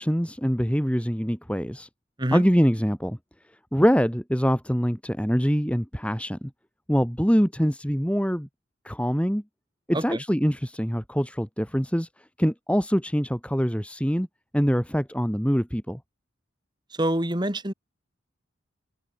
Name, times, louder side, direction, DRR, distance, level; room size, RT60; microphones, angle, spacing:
voice 1, 0.0-1.9 2.3-3.2 3.7-6.5 6.9-8.5 8.8-9.4 9.9-12.1 12.4-14.3 14.5-16.0, equal, 5° left, 6.7 m, -24 dB
voice 2, 17.0-17.7, right 1 dB, 20° right, 2.6 m, -26 dB
open air
head